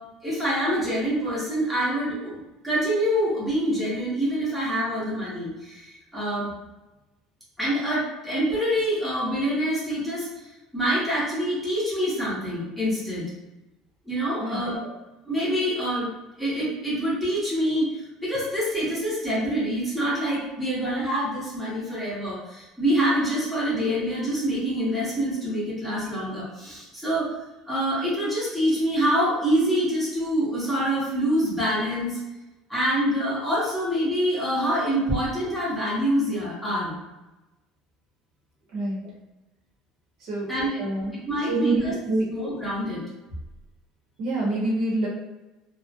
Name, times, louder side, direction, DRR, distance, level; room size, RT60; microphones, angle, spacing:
voice 1, 0.2-6.5 7.6-13.3 14.1-14.9 15.2-16.1 16.4-27.3 27.6-32.2 32.7-36.9 40.5-40.8 41.3-41.9 42.3-43.1, equal, 5° left, -8 dB, 0.8 m, -26 dB
voice 2, 40.8-41.2 41.5-42.3 44.2-45.1, right 2 dB, 55° right, -4 dB, 0.8 m, -26 dB
2.3 x 2.1 x 2.6 m, 1.0 s
cardioid pair, 155°, 0 cm